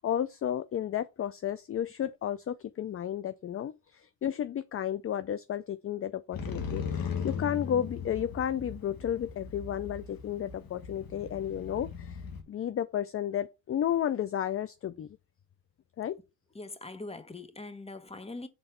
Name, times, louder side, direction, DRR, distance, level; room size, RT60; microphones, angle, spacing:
voice 1, 0.0-12.2 12.5-15.1 16.0-16.2, left 10 dB, 30° left, 0.4 m, -32 dB
Motorcycle, 6.3-12.4, left 6 dB, 50° left, 1.6 m, -38 dB
voice 2, 16.5-18.5, left 2 dB, 15° left, 1.1 m, -42 dB
5.8 x 4.0 x 5.5 m
cardioid pair, 90°, 46 cm